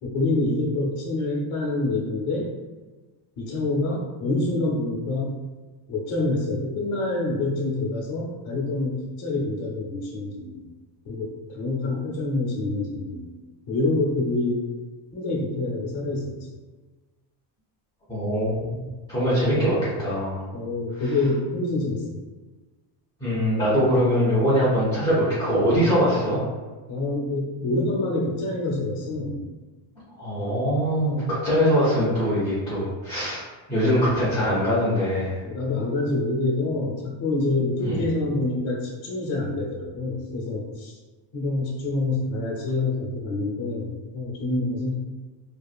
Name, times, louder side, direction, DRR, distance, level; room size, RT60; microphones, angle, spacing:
voice 1, 0.0-2.5 3.4-5.4 5.9-10.7 11.0-13.3 13.7-14.6 15.1-16.3 20.5-22.2 26.9-29.5 35.4-41.0 41.3-45.0, left 2 dB, 70° left, -2 dB, 0.9 m, -26 dB
voice 2, 18.1-18.8 19.1-20.5 23.2-26.4 30.2-33.4 33.7-35.4 37.8-38.0, equal, 10° left, -9 dB, 0.4 m, -22 dB
2.7 x 2.4 x 2.4 m, 1.3 s
cardioid pair, 170°, 49 cm